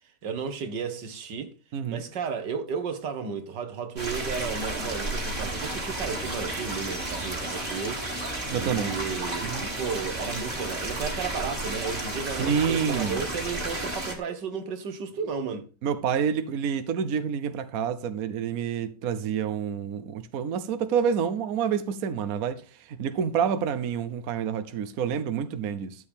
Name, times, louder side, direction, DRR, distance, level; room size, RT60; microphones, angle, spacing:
voice 1, 0.2-1.5 1.9-15.7, right 6 dB, 90° right, 2.0 m, -33 dB
voice 2, 1.7-2.0 8.5-8.9 9.4-9.6 12.4-13.2 15.8-22.6 23.0-25.9, right 7 dB, 60° right, 1.3 m, -28 dB
sound 1, 4.0-14.1, right 1 dB, 30° right, 3.0 m, -32 dB
13.0 x 8.6 x 3.6 m
omnidirectional pair, 1.8 m